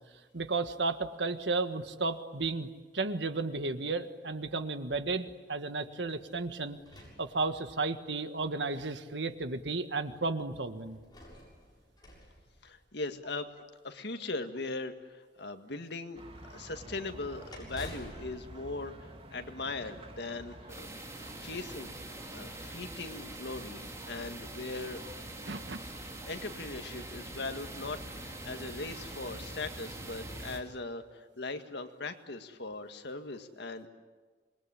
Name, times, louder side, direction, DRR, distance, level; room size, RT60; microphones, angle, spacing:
voice 1, 0.3-2.7 2.9-6.8 7.2-11.0 25.5-25.8, right 3 dB, 70° right, 9 dB, 1.6 m, -33 dB
sound 1, 6.0-8.0 8.8-8.9 10.7-13.3 16.7-19.8, left 1 dB, 25° left, 7.4 m, -51 dB
voice 2, 12.6-13.5 13.8-16.2 16.5-20.9 21.4-25.0 26.3-33.9, left 3 dB, 65° left, 7 dB, 1.9 m, -40 dB
sound 2, 16.1-30.6, right 1 dB, 30° right, 2.7 m, -49 dB
sound 3, 20.7-30.6, right 2 dB, 15° right, 3.2 m, -45 dB
26.5 x 21.5 x 10.0 m, 1.4 s
head